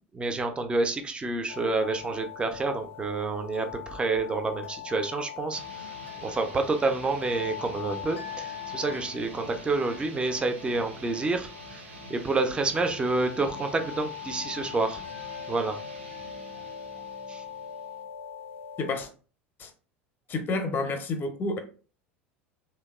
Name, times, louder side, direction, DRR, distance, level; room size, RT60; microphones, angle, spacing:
voice 1, 0.1-5.6 6.2-11.8 12.1-15.0 15.5-15.7 17.3-17.4, right 3 dB, 15° right, 0.4 m, -28 dB
sound 1, 1.5-19.0, left 9 dB, 85° left, 0.4 m, -41 dB
sound 2, 5.5-18.0, right 2 dB, 75° right, 0.6 m, -47 dB
voice 2, 18.8-19.1 19.6-19.7 20.3-21.6, left 3 dB, 30° left, 0.6 m, -29 dB
2.8 x 2.1 x 2.3 m
figure-of-eight pair, 75°, 7 cm